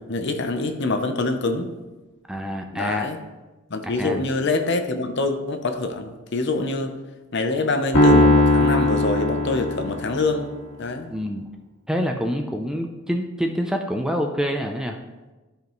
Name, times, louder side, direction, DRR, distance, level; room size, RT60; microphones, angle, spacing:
voice 1, 0.0-1.7 2.7-3.2 3.7-6.9 7.3-10.5 10.8-11.1, left 3 dB, 55° left, 7 dB, 0.7 m, -25 dB
voice 2, 2.3-3.1 3.8-4.2 11.1-11.5 11.9-15.0, equal, 5° right, 3 dB, 0.4 m, -26 dB
Piano, 7.9-10.4, left 1 dB, 85° left, 1.8 m, -18 dB
13.0 x 5.1 x 3.0 m, 1.2 s
head